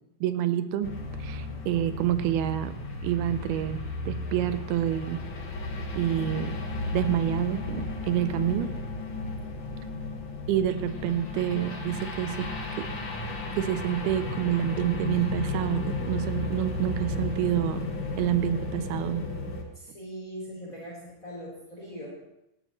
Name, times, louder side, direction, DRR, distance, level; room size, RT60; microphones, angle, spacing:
voice 1, 0.2-0.9 1.2-2.7 3.0-5.2 6.0-6.6 6.9-8.7 10.5-12.5 13.6-17.9 18.2-19.2, right 12 dB, 80° right, 11 dB, 2.6 m, -28 dB
sound 1, 0.8-19.6, left 3 dB, 45° left, 1.6 m, -34 dB
voice 2, 19.7-22.2, equal, 20° left, -4 dB, 4.1 m, -41 dB
18.5 x 13.0 x 3.2 m, 0.82 s
omnidirectional pair, 4.6 m